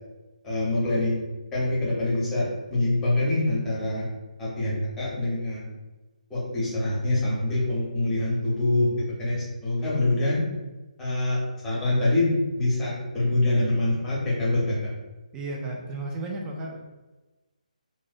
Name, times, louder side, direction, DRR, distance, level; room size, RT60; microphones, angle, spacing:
voice 1, 0.4-1.2 1.5-4.1 4.4-5.7 6.3-8.9 9.2-10.4 11.0-11.4 11.6-14.8, left 2 dB, 10° left, -8 dB, 0.8 m, -25 dB
voice 2, 15.3-16.8, right 2 dB, 10° right, -1 dB, 0.3 m, -33 dB
2.5 x 2.1 x 2.4 m, 1.1 s
figure-of-eight pair, 145°, 4 cm